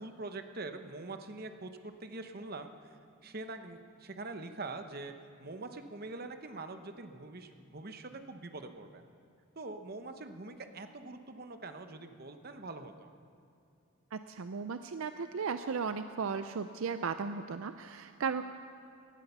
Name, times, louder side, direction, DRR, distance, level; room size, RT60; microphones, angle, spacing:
voice 1, 0.0-9.0 9.6-13.1, right 2 dB, 45° right, 7 dB, 0.9 m, -44 dB
voice 2, 14.1-18.4, right 5 dB, 70° right, 10 dB, 0.5 m, -36 dB
17.5 x 11.5 x 6.8 m, 2.5 s
head